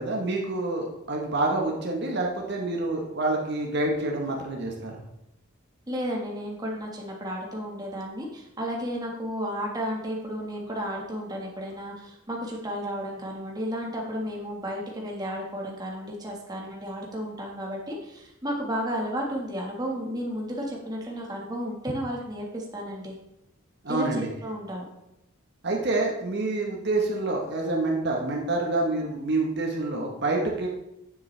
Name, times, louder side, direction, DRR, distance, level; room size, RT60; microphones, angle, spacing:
voice 1, 0.0-5.0 23.8-24.3 25.6-30.7, right 2 dB, 55° right, 0 dB, 1.2 m, -27 dB
voice 2, 5.9-23.1 23.9-24.8, equal, 20° right, -2 dB, 1.6 m, -33 dB
9.2 x 7.4 x 3.3 m, 0.85 s
head